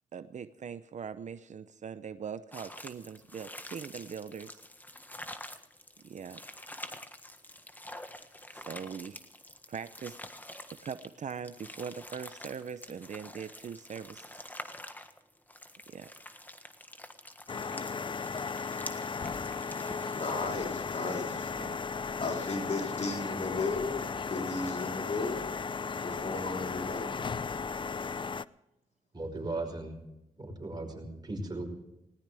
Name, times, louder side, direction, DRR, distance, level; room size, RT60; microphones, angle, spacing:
voice 1, 0.1-4.6 6.0-6.4 8.5-9.2 9.7-10.2 10.7-14.3 15.9-16.1 21.6-21.8, right 7 dB, 60° right, 13 dB, 0.7 m, -41 dB
sound 1, 2.5-20.6, left 1 dB, 15° left, 1.5 m, -47 dB
sound 2, 17.5-28.4, left 5 dB, 35° left, 0.5 m, -36 dB
voice 2, 20.1-21.5 22.2-25.5 26.0-27.1, left 3 dB, 55° left, 1 dB, 4.0 m, -34 dB
voice 3, 29.1-29.9 30.4-31.6, right 2 dB, 30° right, 3 dB, 5.3 m, -37 dB
19.0 x 18.5 x 3.5 m, 0.89 s
cardioid pair, 60°, 14 cm